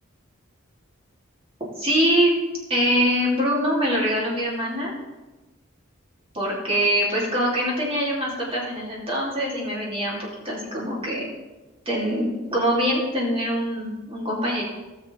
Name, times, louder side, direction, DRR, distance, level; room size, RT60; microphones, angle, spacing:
voice 1, 1.8-2.3 2.7-4.9 6.3-10.2 10.4-11.2 11.8-14.6, equal, 25° right, -5 dB, 3.1 m, -23 dB
18.0 x 6.7 x 3.5 m, 1.1 s
head